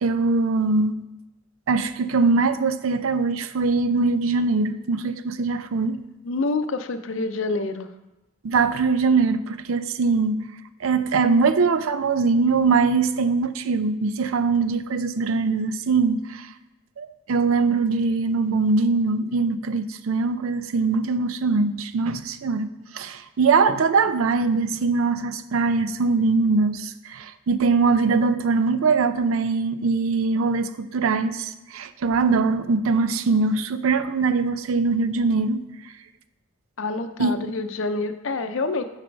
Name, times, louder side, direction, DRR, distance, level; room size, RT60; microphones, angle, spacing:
voice 1, 0.0-1.0 1.7-6.0 8.4-10.5 10.8-16.5 17.0-22.7 22.9-35.6 37.2-37.5, right 4 dB, 90° right, 12 dB, 0.5 m, -22 dB
voice 2, 6.2-7.9 36.8-38.8, left 3 dB, 70° left, 9 dB, 0.6 m, -27 dB
7.7 x 4.2 x 5.2 m, 0.99 s
head